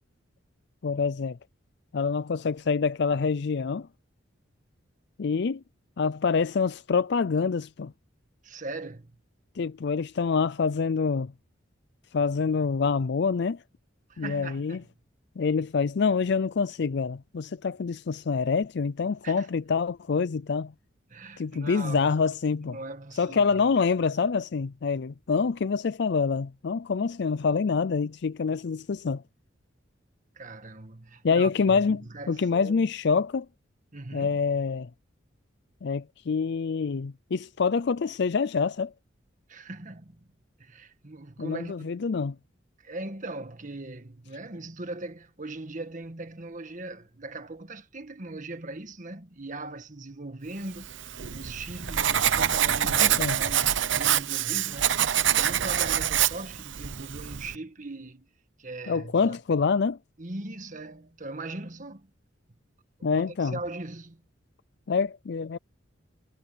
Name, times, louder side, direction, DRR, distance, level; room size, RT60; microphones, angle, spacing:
voice 1, 0.8-1.4 1.9-3.9 5.2-5.6 6.0-7.9 9.6-11.3 12.1-13.6 14.2-14.8 15.4-20.7 21.4-22.8 23.2-29.2 31.2-32.0 32.3-33.5 34.1-34.9 35.8-38.9 41.4-42.4 52.8-53.4 58.9-60.0 63.0-63.6 64.9-65.6, left 5 dB, 60° left, 0.4 m, -26 dB
voice 2, 8.4-9.1 14.1-14.8 19.2-19.5 21.1-22.2 22.7-23.6 30.3-32.9 33.9-34.4 39.5-40.3 40.6-42.0 42.8-58.3 58.6-59.4 60.2-62.1 63.0-64.2, right 2 dB, 40° right, 1.7 m, -40 dB
Writing, 50.8-57.6, right 10 dB, 70° right, 0.8 m, -26 dB
head